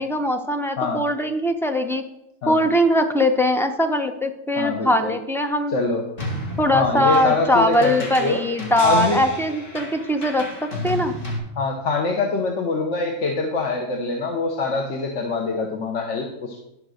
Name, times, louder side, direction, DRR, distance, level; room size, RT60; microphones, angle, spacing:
voice 1, 0.0-2.0 2.5-5.7 6.6-11.1, left 1 dB, 5° left, 5 dB, 0.4 m, -21 dB
voice 2, 4.6-5.2 5.7-6.0 6.7-8.4 8.8-9.2 11.6-16.6, left 4 dB, 65° left, 2 dB, 1.3 m, -24 dB
sound 1, 6.2-11.4, left 1 dB, 45° left, 2.0 m, -32 dB
11.0 x 5.2 x 6.4 m, 0.86 s
omnidirectional pair, 1.3 m